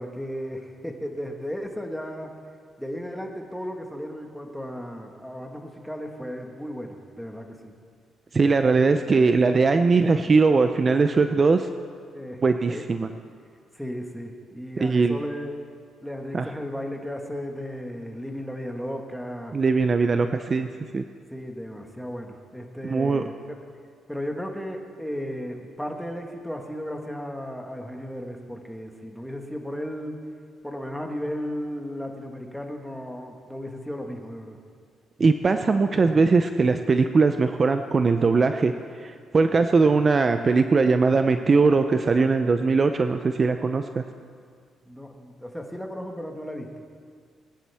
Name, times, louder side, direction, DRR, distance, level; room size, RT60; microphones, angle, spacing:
voice 1, 0.0-2.3 2.8-7.7 12.1-12.4 12.7-12.8 13.7-15.5 16.0-19.6 20.4-20.5 21.3-23.6 24.1-30.2 30.6-34.6 44.9-46.7, equal, ahead, 3 dB, 1.5 m, -35 dB
voice 2, 8.3-11.7 12.4-13.1 14.8-15.2 16.3-16.5 19.5-20.7 20.9-21.0 22.8-23.2 35.2-38.7 39.0-44.0, right 4 dB, 35° right, 8 dB, 0.5 m, -20 dB
20.5 x 10.5 x 3.5 m, 2.1 s
cardioid pair, 90°, 0 cm